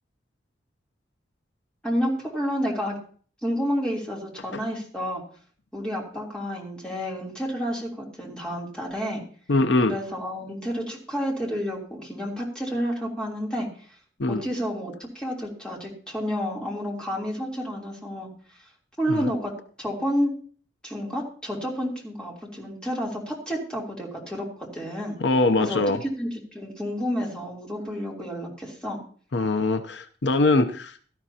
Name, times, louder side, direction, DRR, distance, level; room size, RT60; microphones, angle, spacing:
voice 1, 1.8-3.0 3.4-5.2 5.7-9.2 9.9-13.7 14.3-18.3 19.0-19.5 19.8-20.3 20.8-25.1 25.6-25.8 26.2-29.0, equal, 5° left, -3 dB, 3.2 m, -30 dB
voice 2, 9.5-10.0 14.2-14.4 19.1-19.3 25.2-26.0 29.3-31.0, left 2 dB, 70° left, 9 dB, 0.7 m, -22 dB
17.0 x 12.5 x 2.9 m, 0.44 s
head